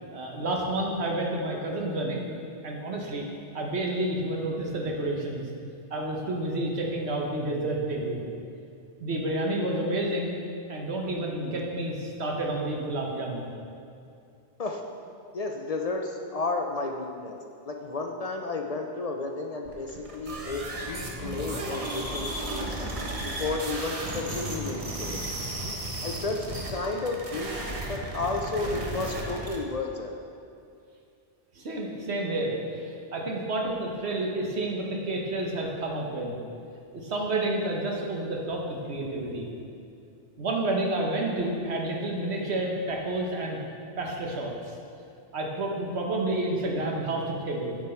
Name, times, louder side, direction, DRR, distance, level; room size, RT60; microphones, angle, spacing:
voice 1, 0.1-2.3 2.6-3.3 3.5-5.5 5.9-8.2 9.0-10.4 10.7-13.5 31.5-36.4 36.9-39.5 40.4-43.6 44.0-44.7 45.3-47.8, right 1 dB, 70° right, 0 dB, 1.3 m, -30 dB
voice 2, 15.3-17.4 17.7-22.7 23.2-25.3 26.0-30.1, left 3 dB, 50° left, 3 dB, 0.4 m, -32 dB
sound 1, 19.6-29.6, right 1 dB, 35° right, 0.9 m, -34 dB
9.1 x 6.2 x 4.4 m, 2.5 s
omnidirectional pair, 1.2 m